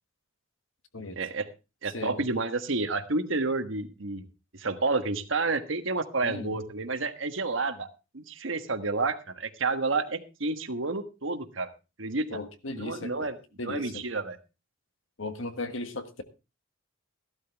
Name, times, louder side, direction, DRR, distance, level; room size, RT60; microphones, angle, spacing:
voice 1, 1.2-1.5 1.8-4.2 4.5-7.9 8.1-11.7 12.0-12.2 12.7-13.3 13.6-14.4, right 3 dB, 70° right, 8 dB, 1.4 m, -30 dB
voice 2, 1.9-2.3 6.2-6.6 12.3-13.3 13.6-14.0 15.2-16.2, left 2 dB, 70° left, 9 dB, 1.5 m, -37 dB
14.5 x 12.5 x 3.5 m, 0.29 s
head